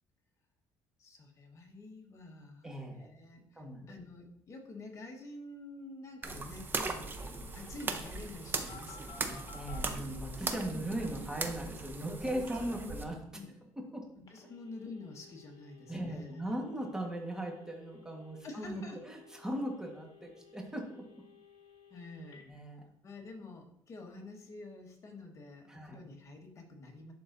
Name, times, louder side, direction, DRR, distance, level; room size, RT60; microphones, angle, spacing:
voice 1, 1.0-7.2 7.5-9.5 10.7-10.8 12.5-13.0 13.3-13.5 14.2-16.4 18.4-19.0 21.9-22.5 23.0-27.1, left 2 dB, 35° left, 2 dB, 1.3 m, -48 dB
voice 2, 2.6-3.1 3.5-3.9 9.5-13.2 13.8-14.1 15.9-21.0 22.5-22.9 25.7-26.0, right 1 dB, 5° right, 0 dB, 1.3 m, -38 dB
sound 1, 6.2-13.0, right 3 dB, 25° right, 0.6 m, -39 dB
Telephone, 6.7-9.8 14.3-22.4, left 6 dB, 55° left, 1.5 m, -57 dB
11.0 x 3.8 x 2.6 m, 0.73 s
cardioid pair, 130°, 8 cm